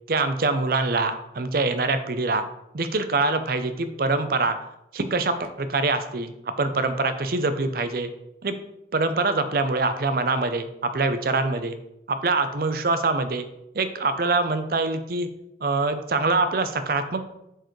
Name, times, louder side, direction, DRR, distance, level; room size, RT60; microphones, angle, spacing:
voice 1, 0.1-2.5 2.7-4.6 4.9-6.3 6.6-8.1 8.4-8.5 8.9-10.7 10.9-11.8 12.1-13.5 13.7-15.3 15.6-17.2, right 3 dB, 50° right, 9 dB, 0.5 m, -24 dB
7.8 x 4.6 x 3.1 m, 0.83 s
head